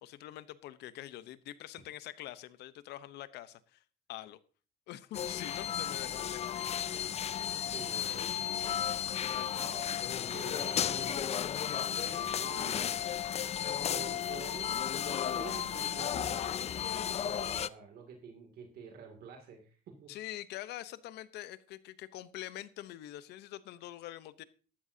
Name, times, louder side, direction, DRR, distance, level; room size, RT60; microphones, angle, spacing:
voice 1, 0.0-3.8 4.1-4.4 4.9-6.7 7.9-8.3 9.2-9.7 20.1-24.4, left 14 dB, 80° left, 16 dB, 0.9 m, -45 dB
sound 1, 5.1-17.7, left 9 dB, 40° left, 0.5 m, -34 dB
voice 2, 7.7-9.0 9.5-12.9 13.9-20.1, right 5 dB, 65° right, 3 dB, 2.5 m, -49 dB
13.5 x 12.5 x 2.8 m, 0.38 s
cardioid pair, 110°, 17 cm